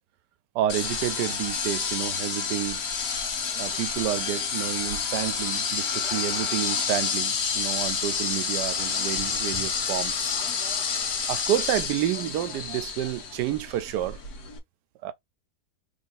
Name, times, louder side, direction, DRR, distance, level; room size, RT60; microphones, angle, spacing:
voice 1, 0.5-2.8 3.6-10.4 10.9-11.0 11.3-14.2 15.0-15.1, right 12 dB, 90° right, 1.2 m, -29 dB
sound 1, 0.7-14.6, left 6 dB, 70° left, 1.6 m, -29 dB
3.5 x 3.2 x 4.1 m
omnidirectional pair, 1.7 m